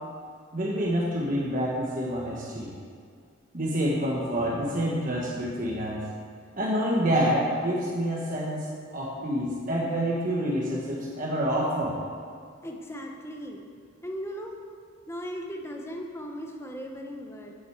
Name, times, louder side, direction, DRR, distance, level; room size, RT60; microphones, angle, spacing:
voice 1, 0.5-2.7 3.5-6.0 6.6-8.7 8.9-12.0, equal, 40° right, -3 dB, 1.3 m, -27 dB
voice 2, 12.6-13.7 14.0-14.6 15.1-17.6, equal, 10° left, 1 dB, 1.0 m, -37 dB
8.3 x 8.0 x 8.1 m, 2.2 s
head